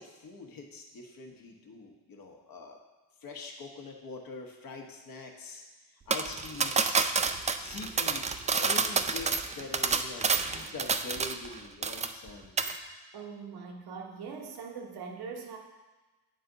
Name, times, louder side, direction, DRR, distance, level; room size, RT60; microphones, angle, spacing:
voice 1, 0.0-2.8 3.2-7.0 7.5-8.3 8.6-12.6, left 3 dB, 60° left, 3 dB, 1.1 m, -44 dB
sound 1, 6.1-11.5 11.8-12.3 12.6-12.8, right 5 dB, 20° right, 0.3 m, -28 dB
voice 2, 13.1-15.6, right 5 dB, 70° right, 2 dB, 1.1 m, -41 dB
8.7 x 3.5 x 3.9 m, 1.2 s
cardioid pair, 75°, 40 cm